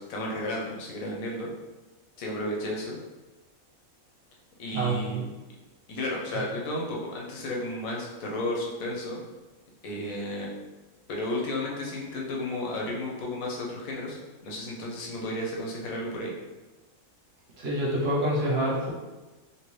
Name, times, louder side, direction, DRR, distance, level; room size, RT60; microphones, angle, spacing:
voice 1, 0.0-1.5 2.2-3.0 4.6-5.5 5.9-9.2 9.8-10.7 11.1-14.2 14.4-16.3, left 1 dB, 75° left, -2 dB, 1.1 m, -33 dB
voice 2, 4.7-5.2 17.6-18.9, right 1 dB, 50° right, -5 dB, 0.9 m, -27 dB
3.1 x 2.7 x 3.1 m, 1.1 s
omnidirectional pair, 1.5 m